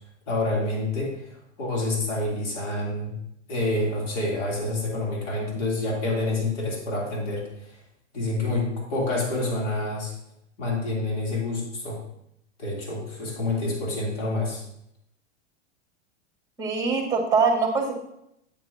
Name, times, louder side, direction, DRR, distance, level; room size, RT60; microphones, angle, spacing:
voice 1, 0.3-3.1 3.5-7.8 8.1-10.1 10.6-12.0 12.6-14.6, left 2 dB, 75° left, -3 dB, 3.3 m, -28 dB
voice 2, 16.6-17.9, right 4 dB, 10° right, 1 dB, 2.0 m, -23 dB
8.5 x 8.5 x 2.8 m, 0.78 s
supercardioid pair, 135°, 36 cm